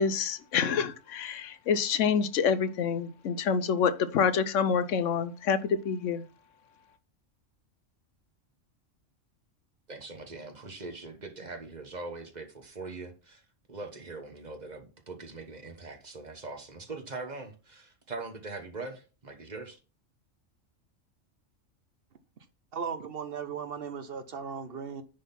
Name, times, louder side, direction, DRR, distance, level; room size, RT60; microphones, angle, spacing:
voice 1, 0.0-6.2, left 6 dB, 80° left, 1.0 m, -27 dB
voice 2, 9.9-13.4 13.7-19.8, right 3 dB, 35° right, 1.2 m, -42 dB
voice 3, 22.7-25.0, right 6 dB, 55° right, 0.9 m, -37 dB
10.0 x 3.9 x 5.7 m
omnidirectional pair, 1.3 m